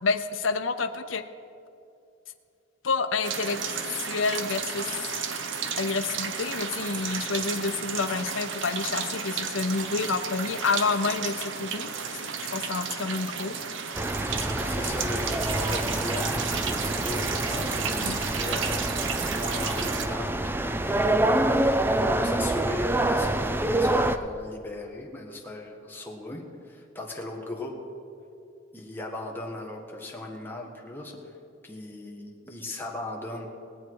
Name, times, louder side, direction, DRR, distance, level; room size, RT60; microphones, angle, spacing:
voice 1, 0.0-1.2 2.8-3.6 3.9-5.4 5.8-11.9 12.5-13.7 17.9-18.2, left 4 dB, 80° left, 9 dB, 0.7 m, -29 dB
sound 1, 3.2-20.1, right 6 dB, 70° right, 0.9 m, -33 dB
sound 2, 13.9-24.2, right 1 dB, 10° right, 0.4 m, -26 dB
voice 2, 14.2-21.8 22.2-27.9 28.7-31.3 31.6-33.5, left 2 dB, 10° left, 0 dB, 1.5 m, -38 dB
20.5 x 8.3 x 4.7 m, 2.5 s
head